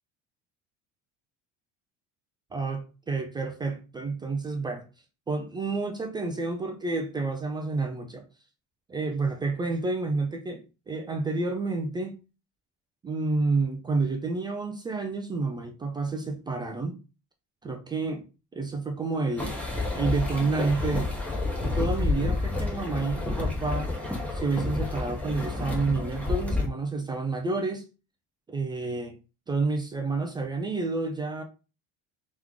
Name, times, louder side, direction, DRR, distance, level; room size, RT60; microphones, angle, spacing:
voice 1, 2.5-4.8 5.3-8.2 8.9-12.2 13.0-17.0 17.6-18.3 18.5-19.6 19.9-21.1 21.6-23.9 24.3-27.9 28.5-29.2 29.5-31.4, right 3 dB, 15° right, 0.3 m, -29 dB
sound 1, 19.4-26.7, left 3 dB, 5° left, 0.8 m, -29 dB
3.5 x 3.0 x 3.6 m
cardioid pair, 160°, 31 cm